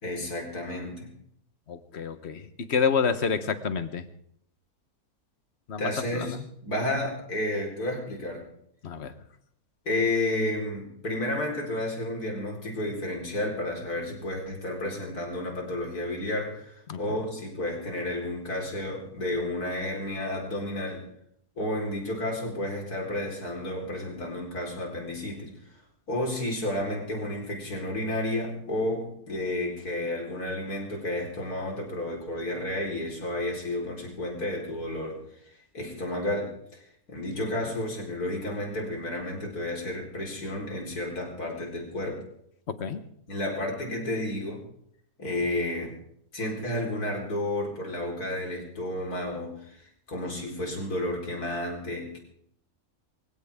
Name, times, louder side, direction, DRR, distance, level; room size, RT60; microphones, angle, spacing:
voice 1, 0.0-1.1 5.8-6.4 6.6-8.5 9.8-21.1 21.6-25.5 26.1-35.2 35.7-36.8 37.1-42.2 43.3-44.6 45.2-45.9 46.3-52.2, left 1 dB, 80° left, 0 dB, 4.9 m, -31 dB
voice 2, 1.7-4.1 5.7-6.4 8.8-9.1 16.9-17.0 42.7-43.0, left 6 dB, 50° left, 11 dB, 1.3 m, -28 dB
23.5 x 16.0 x 3.7 m, 0.70 s
omnidirectional pair, 1.6 m